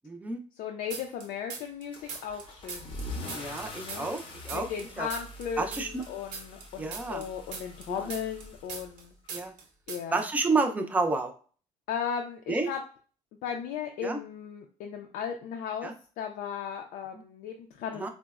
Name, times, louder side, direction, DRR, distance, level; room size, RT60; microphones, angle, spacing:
voice 1, 0.0-0.4 3.3-4.7 5.0-5.1 5.6-6.0 6.8-7.3 7.9-8.1 9.3-9.5 10.1-11.3 12.5-12.7 14.0-14.2 15.8-15.9 18.0-18.1, right 3 dB, 10° right, 4 dB, 0.4 m, -30 dB
voice 2, 0.5-2.9 3.8-4.1 4.5-9.1 9.9-10.2 11.9-12.8 13.4-18.1, left 7 dB, 85° left, 3 dB, 0.4 m, -36 dB
sound 1, 0.9-1.8 2.1-4.9 5.1-9.0 9.3-9.6 9.9-10.2, right 5 dB, 75° right, 0.7 m, -40 dB
Car / Engine starting / Accelerating revving vroom, 1.9-9.3, left 2 dB, 40° left, 0.6 m, -44 dB
3.8 x 2.0 x 2.3 m, 0.41 s
cardioid pair, 135°, 14 cm